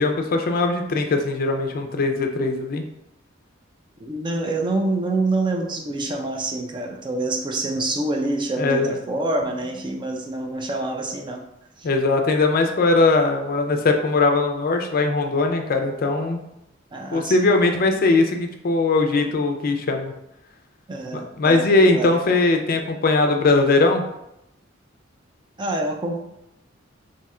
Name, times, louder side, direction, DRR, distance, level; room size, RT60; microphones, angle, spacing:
voice 1, 0.0-2.8 8.6-9.0 11.8-16.4 17.1-20.1 21.1-24.0, left 3 dB, 45° left, 4 dB, 0.4 m, -20 dB
voice 2, 4.0-11.4 11.8-11.9 16.9-17.5 20.9-21.7 21.9-22.2 25.6-26.2, right 2 dB, 25° right, 2 dB, 0.4 m, -26 dB
2.7 x 2.4 x 4.2 m, 0.85 s
head